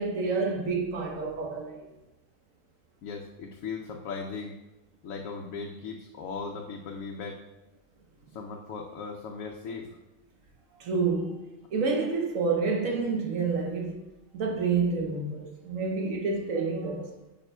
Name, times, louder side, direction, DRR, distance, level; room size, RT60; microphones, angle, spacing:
voice 1, 0.0-1.8 10.8-11.4 11.7-14.0 14.3-17.1, right 4 dB, 80° right, 1.3 m, -28 dB
voice 2, 3.0-4.5 5.0-7.4 8.3-10.0, left 5 dB, 80° left, 1.0 m, -38 dB
8.9 x 5.1 x 2.2 m
omnidirectional pair, 1.4 m